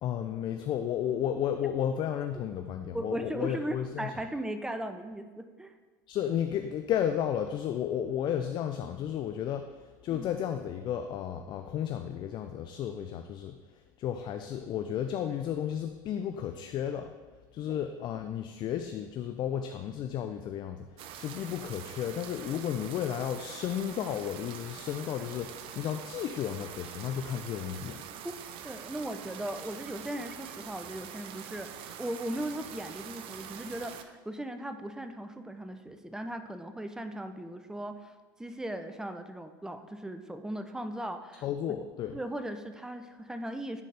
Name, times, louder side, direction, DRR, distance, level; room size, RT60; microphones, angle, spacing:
voice 1, 0.0-4.1 6.1-13.6 14.0-17.1 17.5-28.0 41.4-42.2, left 9 dB, 45° left, 7 dB, 0.4 m, -33 dB
voice 2, 2.9-5.7 10.1-10.3 17.7-17.8 28.2-28.3 28.6-38.1 38.4-41.5 42.1-43.8, right 1 dB, 5° right, 8 dB, 0.5 m, -38 dB
sound 1, 21.0-34.0, right 9 dB, 55° right, 0.5 m, -44 dB
10.0 x 4.1 x 3.3 m, 1.4 s
hypercardioid pair, 95°, 11 cm